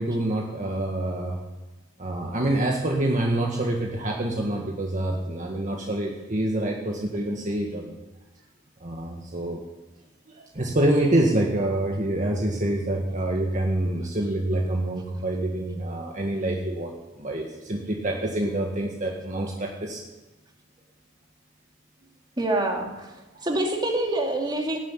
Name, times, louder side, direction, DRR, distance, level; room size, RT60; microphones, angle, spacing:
voice 1, 0.0-1.4 2.0-7.9 8.8-9.6 10.3-16.9 17.2-20.0 23.3-23.5, right 1 dB, 35° right, 0 dB, 1.8 m, -26 dB
voice 2, 22.4-23.1 23.4-24.8, right 1 dB, 20° right, 1 dB, 2.5 m, -26 dB
18.0 x 7.9 x 9.9 m, 1.1 s
head